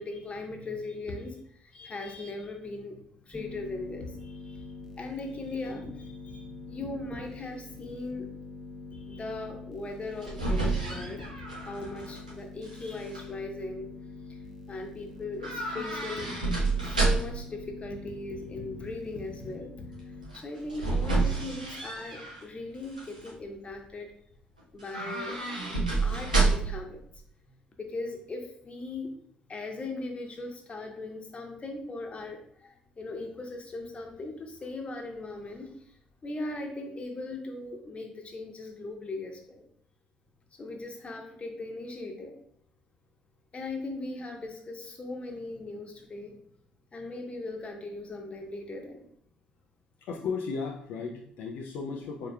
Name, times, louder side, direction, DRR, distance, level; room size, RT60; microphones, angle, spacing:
voice 1, 0.0-4.7 5.0-8.3 8.9-11.2 11.5-13.9 14.3-14.4 14.7-16.3 16.8-19.7 20.3-24.1 24.7-27.0 27.8-29.1 29.5-39.7 40.6-42.4 43.5-46.3 46.9-49.1, left 2 dB, 30° left, 3 dB, 1.0 m, -39 dB
sound 1, 3.3-20.3, left 3 dB, 5° right, 0.9 m, -45 dB
sound 2, 9.9-12.3 12.6-13.2 15.4-17.5 20.3-22.4 22.8-23.3 24.8-26.9 27.1-27.2, right 3 dB, 85° right, 0.6 m, -29 dB
voice 2, 50.0-52.3, left 5 dB, 60° left, 0 dB, 0.5 m, -35 dB
4.9 x 4.3 x 2.2 m, 0.64 s
figure-of-eight pair, 45°, 4 cm